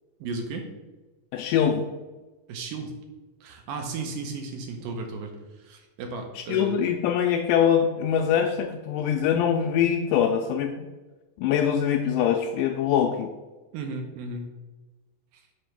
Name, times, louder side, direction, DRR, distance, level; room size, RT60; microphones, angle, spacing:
voice 1, 0.2-0.7 2.5-2.9 3.4-5.3 5.6-6.8 13.7-14.5 15.3-15.4, right 3 dB, 80° right, 4 dB, 2.3 m, -34 dB
voice 2, 1.3-1.9 6.4-10.9 11.4-13.3, left 8 dB, 80° left, 4 dB, 1.9 m, -23 dB
7.8 x 3.0 x 5.8 m, 1.2 s
omnidirectional pair, 4.1 m